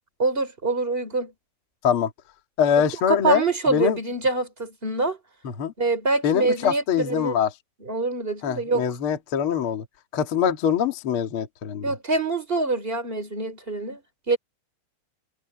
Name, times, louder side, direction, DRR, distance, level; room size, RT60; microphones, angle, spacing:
voice 1, 0.2-1.3 3.1-5.2 5.8-7.4 7.8-8.9 11.8-14.4, right 3 dB, 15° right, 2.9 m, -25 dB
voice 2, 2.6-4.0 5.4-5.7 6.2-7.5 8.4-9.8 10.1-11.9, left 8 dB, 60° left, 1.4 m, -23 dB
omnidirectional pair, 5.9 m